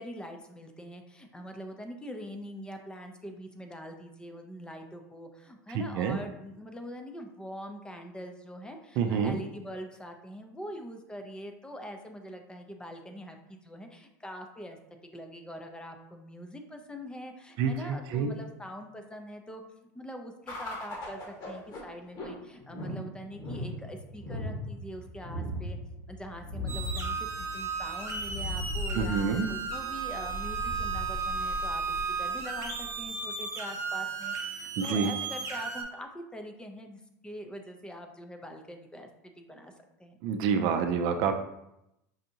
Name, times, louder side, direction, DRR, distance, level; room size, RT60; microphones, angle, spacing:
voice 1, 0.0-14.8 15.1-19.6 19.9-25.8 26.1-31.8 32.2-39.1 39.4-39.7 40.0-40.2, equal, 10° left, 4 dB, 0.5 m, -43 dB
voice 2, 5.7-6.2 9.0-9.4 17.6-17.7 18.1-18.3 28.9-29.5 34.8-35.1 40.2-41.3, right 6 dB, 55° right, 6 dB, 0.4 m, -27 dB
sound 1, 20.5-33.1, left 1 dB, 45° left, 1.4 m, -38 dB
sound 2, 26.7-35.8, right 5 dB, 35° right, 1.0 m, -35 dB
5.5 x 2.5 x 2.8 m, 0.84 s
hypercardioid pair, 95°, 9 cm